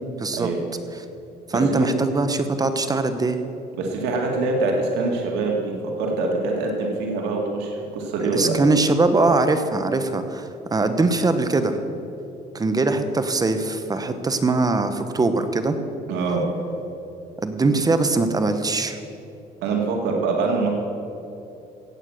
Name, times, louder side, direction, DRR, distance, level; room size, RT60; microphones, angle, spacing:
voice 1, 0.2-0.5 1.5-3.4 8.3-11.8 12.5-15.8 17.4-19.0, right 3 dB, 20° right, 9 dB, 1.0 m, -21 dB
voice 2, 3.8-8.5 16.1-16.4 19.6-20.7, right 3 dB, 90° right, 0 dB, 2.1 m, -24 dB
16.0 x 8.7 x 6.5 m, 2.7 s
cardioid pair, 110°, 17 cm